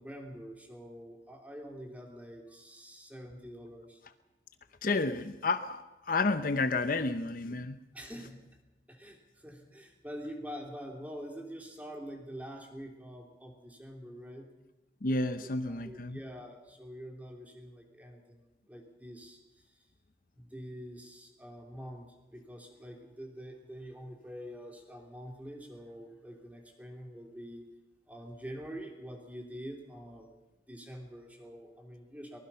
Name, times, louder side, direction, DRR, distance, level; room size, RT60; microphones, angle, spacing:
voice 1, 0.0-4.0 7.9-8.4 8.9-14.5 15.2-19.8 20.3-27.7 28.1-32.4, equal, 10° right, 2 dB, 3.2 m, -46 dB
voice 2, 4.8-7.8 15.0-16.2, left 3 dB, 50° left, 10 dB, 0.8 m, -31 dB
23.5 x 20.0 x 5.7 m, 1.0 s
head